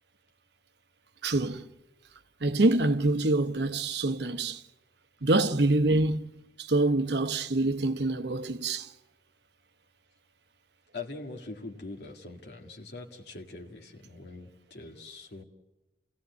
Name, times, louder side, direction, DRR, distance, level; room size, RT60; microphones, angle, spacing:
voice 1, 1.2-1.7 2.4-4.6 5.2-6.3 6.6-8.9, right 2 dB, 65° right, 1.0 m, -26 dB
voice 2, 10.9-15.4, left 3 dB, 65° left, 1.9 m, -43 dB
28.5 x 17.0 x 8.1 m
head